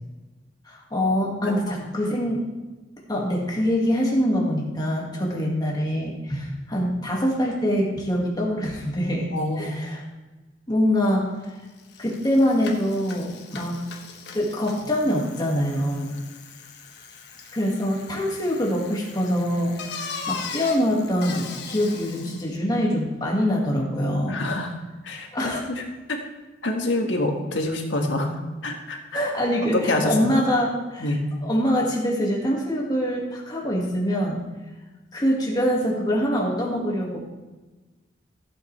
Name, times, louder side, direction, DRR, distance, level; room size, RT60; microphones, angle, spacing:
voice 1, 0.7-2.5 3.1-9.3 9.6-10.0 10.7-11.6 12.0-13.8 14.3-16.1 17.5-24.4 25.3-25.6 29.1-31.1 31.4-34.4 35.1-37.2, equal, 20° left, -2 dB, 2.0 m, -24 dB
voice 2, 1.4-1.8 9.3-9.7 24.3-24.7 25.0-25.8 26.1-26.2 26.6-29.3 29.7-30.4 31.0-31.2, left 2 dB, 85° left, 2 dB, 1.7 m, -27 dB
Bicycle, 11.4-11.5 11.8-22.6, left 5 dB, 60° left, 1.2 m, -39 dB
15.0 x 7.8 x 3.4 m, 1.2 s
head